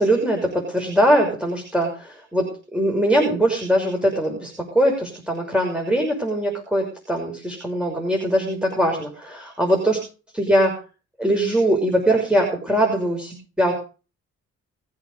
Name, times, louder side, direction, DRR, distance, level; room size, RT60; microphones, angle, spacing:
voice 1, 0.0-10.0 10.3-10.7 11.2-13.7, right 1 dB, 5° right, 1 dB, 6.2 m, -21 dB
21.5 x 8.7 x 5.3 m, 0.36 s
cardioid pair, 90°, 30 cm